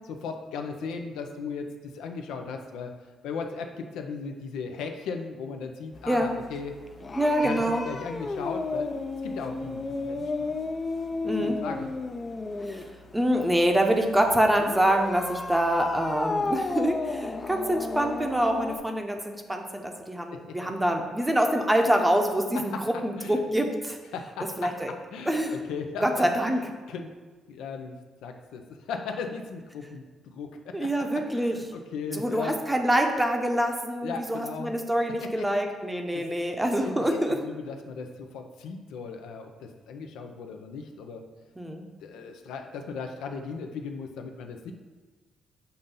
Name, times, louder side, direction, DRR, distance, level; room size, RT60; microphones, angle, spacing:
voice 1, 0.1-2.9 3.2-6.7 7.4-8.9 9.2-10.5 11.4-11.9 14.2-14.3 20.3-20.6 22.7-22.8 23.2-23.4 24.1-24.7 25.1-26.3 26.9-27.1 27.5-27.9 28.2-30.9 31.3-32.5 34.0-34.7 35.2-35.4 36.1-36.3 36.8-41.2 42.0-44.7, left 5 dB, 90° left, 5 dB, 0.5 m, -37 dB
sound 1, 5.9-18.8, left 3 dB, 30° left, 0.4 m, -33 dB
voice 2, 7.1-7.8 11.2-11.6 12.7-24.0 24.6-24.9 25.3-25.6 26.0-26.6 30.7-31.5 32.1-37.4 41.6-41.8, right 1 dB, 10° right, 3 dB, 0.7 m, -25 dB
6.9 x 2.6 x 5.4 m, 1.4 s
cardioid pair, 95°, 0 cm